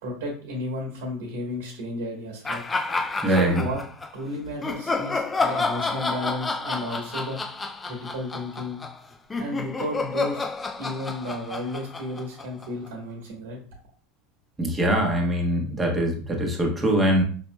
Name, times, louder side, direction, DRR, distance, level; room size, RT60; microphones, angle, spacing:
voice 1, 0.0-2.6 3.3-3.8 4.1-7.4 7.8-8.8 9.4-10.5 10.8-13.6, left 1 dB, 80° right, 0 dB, 1.1 m, -33 dB
sound 1, 2.4-4.1 4.6-12.9, left 3 dB, 20° left, 0.4 m, -30 dB
voice 2, 3.2-3.6 14.6-17.2, right 1 dB, 20° right, 1 dB, 1.1 m, -22 dB
5.0 x 2.8 x 2.2 m, 0.43 s
hypercardioid pair, 100°, 0 cm